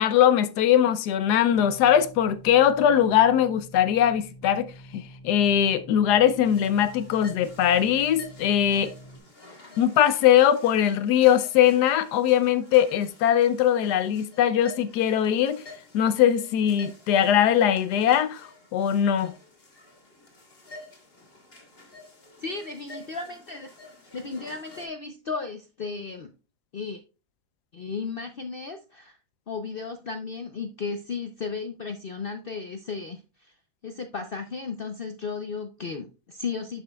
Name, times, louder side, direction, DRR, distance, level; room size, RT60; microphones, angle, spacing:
voice 1, 0.0-8.9 9.8-15.6 15.9-19.3, left 10 dB, 90° left, 1.2 m, -21 dB
sound 1, 1.5-9.2, equal, 80° right, 4.6 m, -47 dB
sound 2, 6.4-24.9, left 2 dB, 35° left, 2.0 m, -49 dB
voice 2, 22.4-23.7 24.1-26.3 26.7-27.0 27.7-29.2 29.5-33.5 33.8-36.8, left 4 dB, 60° left, 0.6 m, -34 dB
11.0 x 5.5 x 2.3 m
omnidirectional pair, 1.7 m